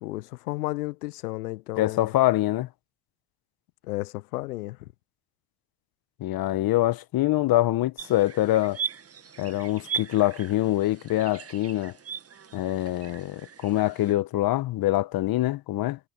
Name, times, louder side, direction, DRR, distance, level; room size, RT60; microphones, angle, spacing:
voice 1, 0.0-2.1 3.8-4.9, left 20 dB, 90° left, 0.7 m, -33 dB
voice 2, 1.8-2.7 6.2-8.8 9.4-11.9 12.5-16.0, left 15 dB, 50° left, 1.2 m, -24 dB
sound 1, 8.0-14.1, right 7 dB, 30° right, 2.2 m, -38 dB
hypercardioid pair, 70°, 45 cm